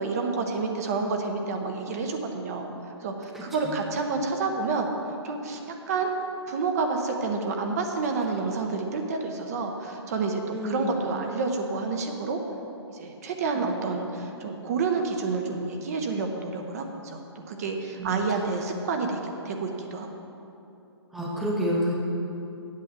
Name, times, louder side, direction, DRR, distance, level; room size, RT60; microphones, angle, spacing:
voice 1, 0.0-2.7 3.0-4.9 5.2-5.6 5.9-6.1 6.5-12.4 12.9-17.2 17.5-20.1, right 4 dB, 35° right, 3 dB, 0.7 m, -29 dB
voice 2, 3.3-3.8 10.5-11.0 13.5-13.7 18.0-18.2 21.1-21.9, equal, ahead, -4 dB, 0.7 m, -29 dB
8.4 x 6.1 x 6.7 m, 2.9 s
hypercardioid pair, 155°, 15 cm